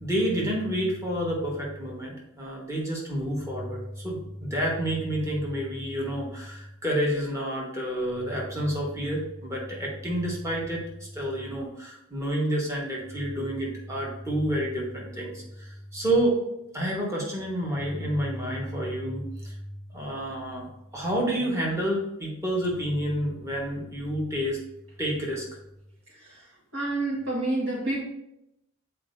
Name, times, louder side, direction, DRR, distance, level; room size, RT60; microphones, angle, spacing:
voice 1, 0.0-16.4 16.7-19.6 19.9-24.6 25.0-25.4, right 1 dB, 15° right, -3 dB, 1.3 m, -29 dB
voice 2, 26.7-28.0, right 2 dB, 80° right, -4 dB, 1.7 m, -28 dB
8.3 x 4.4 x 2.6 m, 0.84 s
head